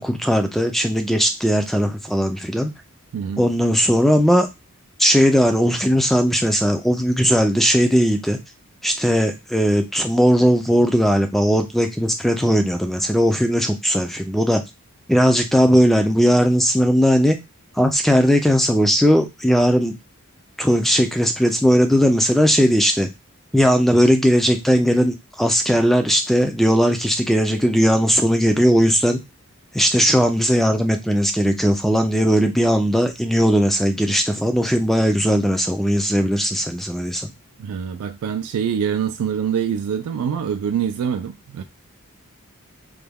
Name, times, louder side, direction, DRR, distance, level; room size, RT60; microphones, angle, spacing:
voice 1, 0.0-2.7 3.4-4.5 5.0-8.4 8.8-14.6 15.1-17.4 17.8-20.0 20.6-23.1 23.5-29.2 29.7-37.3, equal, ahead, 0.3 m, -18 dB
voice 2, 3.1-3.5 37.6-41.6, right 8 dB, 85° right, 0.3 m, -25 dB
3.1 x 2.2 x 3.4 m
head